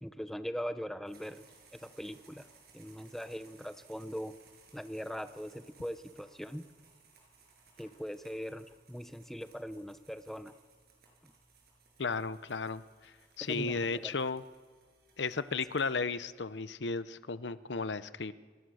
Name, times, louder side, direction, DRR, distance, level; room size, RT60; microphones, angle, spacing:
voice 1, 0.0-1.5 1.7-2.5 2.7-4.3 4.7-6.7 7.8-10.5 11.2-11.3 13.4-14.1 15.5-15.6, equal, ahead, 10 dB, 0.8 m, -41 dB
sound 1, 1.1-16.5, right 4 dB, 60° right, 6.9 m, -63 dB
voice 2, 12.0-12.8 13.4-14.4 15.2-18.3, left 4 dB, 90° left, 14 dB, 0.8 m, -34 dB
29.5 x 20.5 x 6.4 m, 1.5 s
head